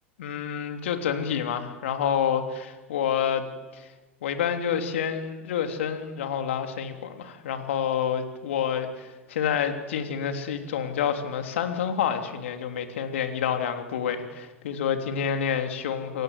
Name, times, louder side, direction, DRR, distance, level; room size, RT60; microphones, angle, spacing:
voice 1, 0.2-3.5 3.7-3.9 4.2-16.2, left 8 dB, 70° left, 6 dB, 3.4 m, -28 dB
29.5 x 24.0 x 8.3 m, 1.2 s
figure-of-eight pair, 85°, 7 cm